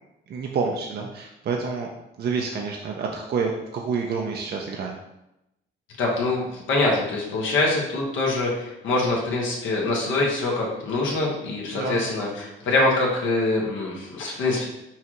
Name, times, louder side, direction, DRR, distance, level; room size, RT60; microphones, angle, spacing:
voice 1, 0.3-1.9 2.2-5.0 11.7-12.1, right 5 dB, 55° right, 1 dB, 0.5 m, -28 dB
voice 2, 6.0-14.7, left 2 dB, 75° left, -3 dB, 1.2 m, -24 dB
5.6 x 2.4 x 3.0 m, 0.87 s
cardioid pair, 90°, 20 cm